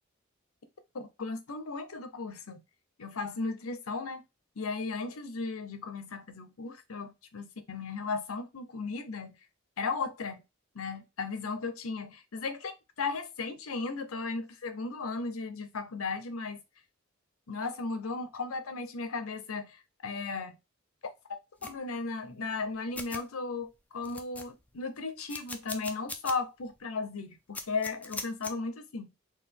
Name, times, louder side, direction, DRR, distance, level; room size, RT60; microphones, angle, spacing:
voice 1, 0.9-2.6 3.0-4.2 4.6-9.4 9.8-10.4 10.7-16.6 17.5-20.6 21.6-29.1, left 4 dB, 90° left, 0.7 m, -36 dB
sound 1, 21.6-21.8 22.6-22.7 22.9-23.2 23.7-23.8 24.0-24.7 25.3-26.4 26.8-26.9 27.5-28.5, left 2 dB, 5° left, 0.4 m, -40 dB
4.0 x 2.5 x 3.5 m
head